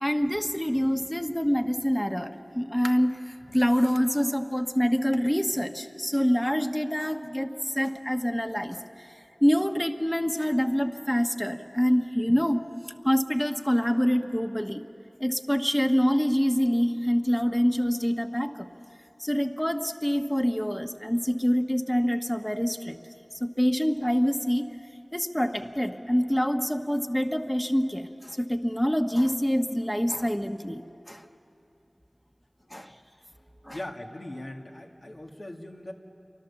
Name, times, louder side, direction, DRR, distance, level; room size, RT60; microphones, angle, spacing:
voice 1, 0.0-8.8 9.4-12.6 13.0-14.8 15.2-18.7 19.2-23.0 23.4-24.7 25.1-31.2 32.7-32.9 33.7-33.8, equal, 10° left, 6 dB, 1.3 m, -26 dB
voice 2, 33.7-35.9, left 1 dB, 60° left, 1 dB, 2.3 m, -40 dB
29.0 x 24.0 x 7.2 m, 2.8 s
wide cardioid pair, 40°, 0 cm